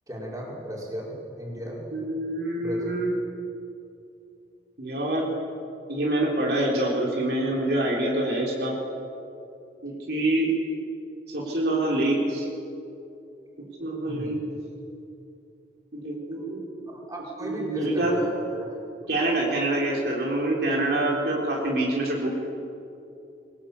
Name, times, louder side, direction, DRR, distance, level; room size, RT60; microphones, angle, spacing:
voice 1, 0.1-1.8 2.6-2.9 9.9-10.0 14.0-14.4 16.9-18.8, right 1 dB, 20° right, -4 dB, 5.5 m, -35 dB
voice 2, 1.9-3.1 4.8-5.3 5.9-8.7 9.8-10.5 11.3-12.5 13.8-14.4 15.9-16.9 17.4-18.1 19.1-22.3, right 1 dB, 60° right, -3 dB, 4.0 m, -26 dB
23.5 x 19.0 x 8.5 m, 2.7 s
head